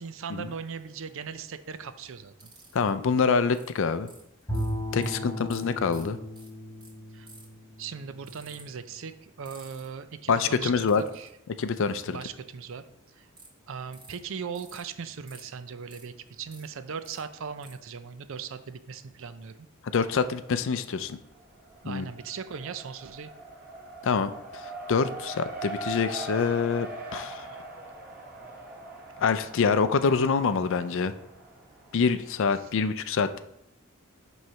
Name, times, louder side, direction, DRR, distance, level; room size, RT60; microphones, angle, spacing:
voice 1, 0.0-2.5 5.0-5.3 7.1-7.3 7.8-11.3 12.1-12.8 13.2-13.3 13.7-19.5 21.8-23.3 32.6-32.7, right 6 dB, 65° right, 11 dB, 0.5 m, -39 dB
sound 1, 2.4-2.9 3.5-3.7 4.1-4.7 5.0-5.1 5.5-5.6 5.9-6.0 6.4-6.5 6.8-6.9 7.3-7.6 8.3-8.6 9.5-9.9 10.9-11.3 13.4-13.5 13.9-14.2 14.6-14.8 15.3-15.4 15.9-16.7 17.0-17.2 17.6-17.7, right 3 dB, 25° right, 2.3 m, -50 dB
voice 2, 2.7-4.1 4.9-6.2 10.3-11.0 11.6-12.2 19.9-21.2 21.9-22.1 24.0-24.6 24.9-26.9 27.1-27.5 29.2-31.1 31.9-33.4, left 5 dB, 65° left, 12 dB, 0.4 m, -25 dB
Bowed string instrument, 4.5-8.7, equal, 10° left, 2.2 m, -36 dB
Race car auto racing, 20.3-20.7 21.1-32.4, right 2 dB, 45° right, 1.2 m, -42 dB
7.7 x 3.2 x 5.6 m, 0.81 s
head